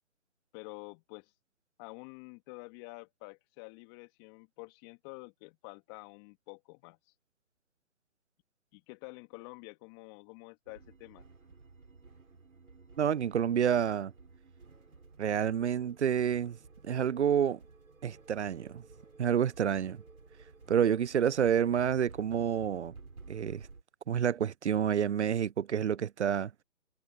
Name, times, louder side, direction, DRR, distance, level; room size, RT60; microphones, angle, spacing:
voice 1, 0.5-1.3 1.8-7.0 8.7-11.2, left 29 dB, 15° left, 2.6 m, -48 dB
sound 1, 10.7-23.8, right 4 dB, 75° right, 7.1 m, -54 dB
voice 2, 13.0-14.1 15.2-16.6 16.9-17.6 18.0-18.8 19.2-20.0 20.7-22.9 23.3-23.7 24.1-26.5, right 8 dB, 55° right, 0.5 m, -28 dB
figure-of-eight pair, 155°, 41 cm